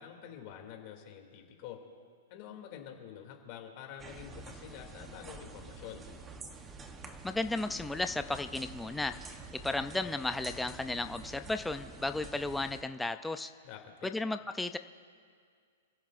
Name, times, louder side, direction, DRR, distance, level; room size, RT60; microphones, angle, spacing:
voice 1, 0.0-1.8 2.3-6.0 13.6-14.1, left 9 dB, 40° left, 2 dB, 2.6 m, -47 dB
sound 1, 4.0-12.8, right 3 dB, 15° right, 0.9 m, -48 dB
voice 2, 7.2-9.2 9.6-13.5 14.0-14.8, left 2 dB, 5° left, 8 dB, 0.4 m, -34 dB
28.5 x 16.0 x 2.5 m, 2.1 s
hypercardioid pair, 160°, 0 cm